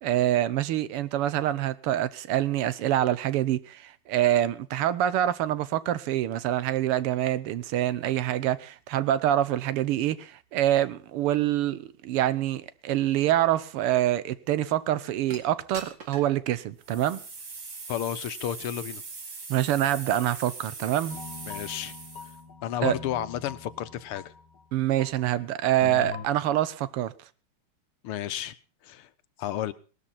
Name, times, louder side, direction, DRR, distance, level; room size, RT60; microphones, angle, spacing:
voice 1, 0.0-17.2 19.5-21.2 22.8-22.9 24.7-27.1, right 12 dB, 90° right, 1.8 m, -26 dB
sound 1, 15.3-15.4 15.7-16.3 16.8-22.4, right 4 dB, 55° right, 3.3 m, -41 dB
voice 2, 17.9-19.0 21.5-21.9 22.6-24.3 28.0-28.5 28.8-29.1 29.4-29.7, left 11 dB, 80° left, 1.8 m, -32 dB
sound 2, 21.1-24.6 25.0-25.2 25.8-26.3, left 5 dB, 55° left, 1.7 m, -42 dB
19.5 x 12.5 x 4.2 m
omnidirectional pair, 2.4 m